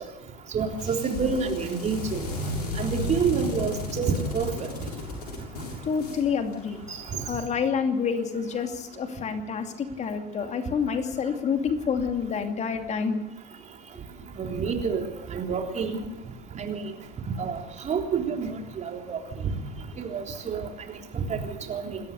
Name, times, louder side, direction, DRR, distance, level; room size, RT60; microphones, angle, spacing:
voice 1, 0.5-2.3 2.8-4.7 6.9-7.0 14.4-15.0 15.3-16.0 16.5-16.9 17.4-19.5 20.0-20.7 21.1-22.0, right 5 dB, 35° right, 3 dB, 3.5 m, -28 dB
sound 1, 0.7-7.1, left 2 dB, 70° left, 7.0 m, -34 dB
voice 2, 5.8-6.8 7.3-13.2, left 6 dB, 35° left, 6 dB, 2.5 m, -28 dB
27.5 x 14.0 x 6.8 m, 0.95 s
figure-of-eight pair, 65°, 20 cm